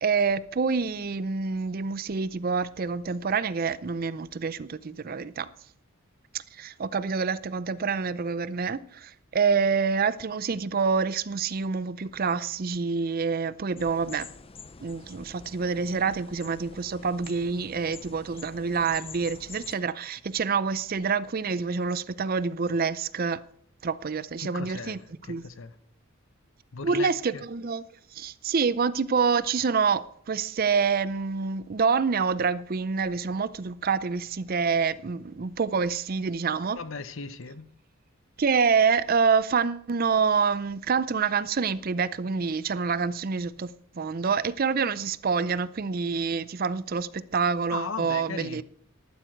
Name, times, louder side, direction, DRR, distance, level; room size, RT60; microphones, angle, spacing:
voice 1, 0.0-5.5 6.3-14.3 14.8-23.4 23.8-25.5 26.8-27.8 28.1-36.8 38.4-48.6, right 5 dB, 40° right, 0.5 m, -27 dB
sound 1, 13.8-19.8, left 5 dB, 25° left, 0.5 m, -46 dB
voice 2, 24.4-25.7 26.7-27.4 36.8-37.7 47.7-48.6, left 4 dB, 60° left, 0.8 m, -37 dB
14.0 x 11.5 x 4.6 m
head